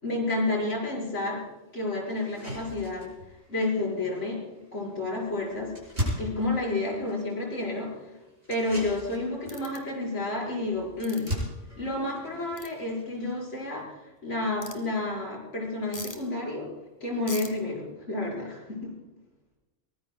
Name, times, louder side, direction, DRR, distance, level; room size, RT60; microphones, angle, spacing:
voice 1, 0.0-1.4 1.7-3.1 3.5-4.4 4.7-5.7 6.2-7.9 8.5-11.3 11.8-16.7 17.0-19.0, left 2 dB, 90° left, -2 dB, 6.0 m, -30 dB
sound 1, 1.1-1.2 1.7-1.8 2.1-13.8, equal, 65° right, 7.1 m, -39 dB
sound 2, 9.5-9.8 11.0-11.3 12.6-12.7 14.6-14.8 15.9-16.2 17.3-17.5, left 2 dB, 30° left, 1.9 m, -40 dB
23.5 x 19.5 x 2.4 m, 1.1 s
omnidirectional pair, 1.2 m